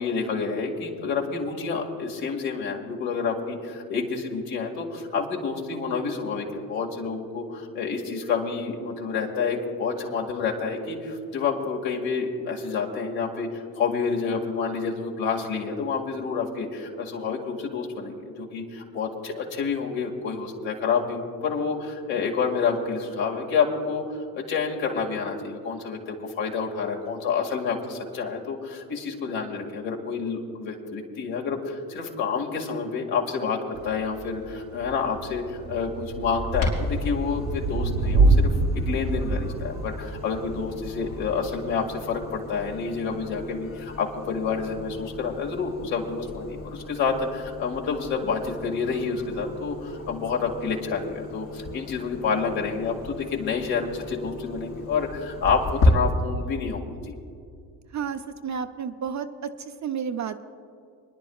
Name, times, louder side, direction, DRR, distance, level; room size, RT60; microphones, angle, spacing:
voice 1, 0.0-57.1, left 5 dB, 70° left, 0 dB, 2.2 m, -29 dB
Thunder / Rain, 33.8-42.0, right 3 dB, 75° right, 1.5 m, -27 dB
Clock, 36.5-55.9, left 2 dB, 90° left, 3.8 m, -33 dB
voice 2, 57.9-60.5, right 7 dB, 35° right, 8 dB, 0.6 m, -32 dB
29.0 x 10.5 x 2.4 m, 2.4 s
hypercardioid pair, 60°, 48 cm